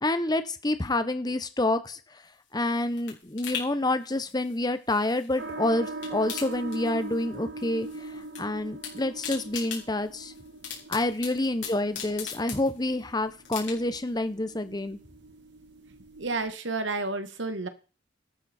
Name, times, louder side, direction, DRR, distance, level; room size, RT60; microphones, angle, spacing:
voice 1, 0.0-2.0 2.5-7.9 8.4-10.3 10.9-15.0, left 2 dB, 20° left, 11 dB, 1.0 m, -28 dB
sound 1, 2.3-5.5 5.8-7.3 7.6-8.4 8.7-13.0 13.4-14.1 14.5-14.6, left 7 dB, 80° left, 5.2 m, -40 dB
sound 2, 5.4-16.5, right 2 dB, 65° right, 1.9 m, -42 dB
voice 2, 16.2-17.7, right 3 dB, 85° right, 10 dB, 1.6 m, -31 dB
12.5 x 12.0 x 4.4 m, 0.36 s
head